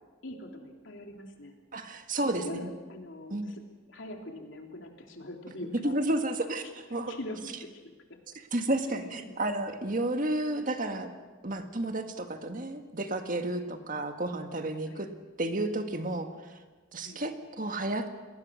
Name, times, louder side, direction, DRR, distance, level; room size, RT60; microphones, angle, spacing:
voice 1, 0.2-1.6 2.2-3.6 3.9-5.9 7.1-7.7 8.1-8.2 8.9-9.3 13.6-13.7 14.9-15.0 17.0-17.2, left 1 dB, 65° left, 2 dB, 3.2 m, -42 dB
voice 2, 1.7-2.7 3.3-3.5 5.8-7.2 8.3-11.1 11.4-15.1 15.4-16.3 16.9-18.1, right 1 dB, 40° right, 6 dB, 1.7 m, -31 dB
28.5 x 19.5 x 6.4 m, 1.3 s
head